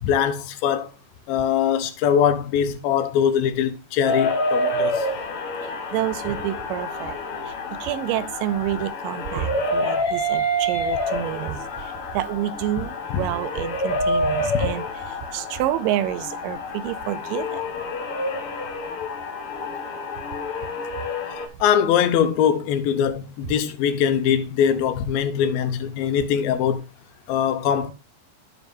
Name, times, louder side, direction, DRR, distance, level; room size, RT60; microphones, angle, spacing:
voice 1, 0.0-0.9 1.3-5.1 13.1-13.3 14.4-14.5 21.6-26.8 27.3-27.9, left 8 dB, 90° left, 2.7 m, -22 dB
sound 1, 4.0-21.5, left 1 dB, 60° left, 1.6 m, -28 dB
voice 2, 5.6-7.2 7.4-7.6 7.8-17.6, right 12 dB, 80° right, 2.2 m, -28 dB
13.5 x 5.0 x 2.6 m
omnidirectional pair, 4.1 m